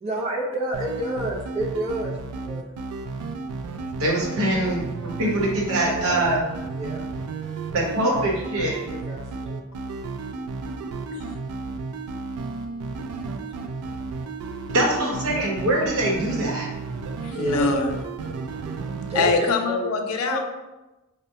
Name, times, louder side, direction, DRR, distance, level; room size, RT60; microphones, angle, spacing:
voice 1, 0.0-2.7 5.8-6.2 6.7-7.1 7.9-8.3 8.6-9.7 11.7-11.8 17.3-17.7 18.6-18.7 19.1-19.9 20.2-20.4, right 1 dB, 30° right, -3 dB, 0.6 m, -30 dB
sound 1, 0.7-19.4, right 4 dB, 90° right, 0.3 m, -33 dB
voice 2, 4.0-6.5 7.7-8.8 14.7-16.7, right 1 dB, 70° right, -2 dB, 0.9 m, -23 dB
voice 3, 17.2-17.9 19.2-20.4, left 3 dB, 75° left, 4 dB, 0.4 m, -23 dB
4.4 x 2.1 x 2.7 m, 1.1 s
head